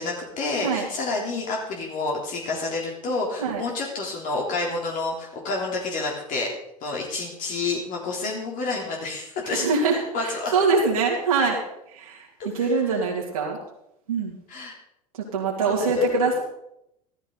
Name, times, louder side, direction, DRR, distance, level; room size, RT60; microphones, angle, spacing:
voice 1, 0.0-6.5 6.8-9.7 10.1-10.5 12.4-12.7 14.5-14.7 15.7-15.8, left 3 dB, 50° left, -1 dB, 3.6 m, -29 dB
voice 2, 9.5-11.6 11.9-12.2 12.5-13.6 14.1-14.3 15.3-16.4, right 4 dB, 80° right, -4 dB, 2.7 m, -23 dB
14.5 x 13.0 x 4.1 m, 0.79 s
hypercardioid pair, 80°, 18 cm